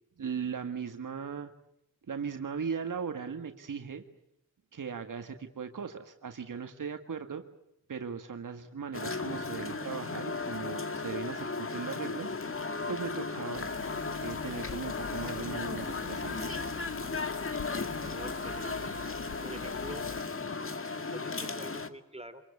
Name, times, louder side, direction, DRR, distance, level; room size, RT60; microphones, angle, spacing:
voice 1, 0.2-1.5 2.1-4.0 4.7-7.4 7.9-12.3 12.9-13.7 14.2-16.7, right 6 dB, 80° right, 6 dB, 1.9 m, -38 dB
sound 1, 8.9-21.9, left 4 dB, 40° left, 2.0 m, -36 dB
sound 2, 13.5-20.2, left 7 dB, 90° left, 1.0 m, -44 dB
voice 2, 18.1-18.9 19.4-20.1 20.9-22.4, right 1 dB, 20° right, 11 dB, 2.9 m, -46 dB
26.5 x 21.5 x 8.4 m, 0.81 s
wide cardioid pair, 65°, 31 cm